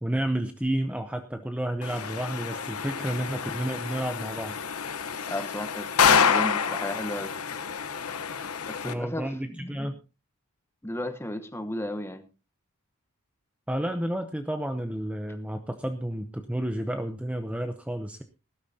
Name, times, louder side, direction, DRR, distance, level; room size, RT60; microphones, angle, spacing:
voice 1, 0.0-4.5 8.8-10.0 13.7-18.2, right 1 dB, 5° right, 7 dB, 0.7 m, -31 dB
sound 1, 1.8-8.9, left 6 dB, 85° left, 1.0 m, -27 dB
voice 2, 5.3-7.3 8.7-9.9 10.8-12.2, left 1 dB, 10° left, 9 dB, 1.1 m, -34 dB
19.0 x 12.0 x 2.8 m, 0.31 s
head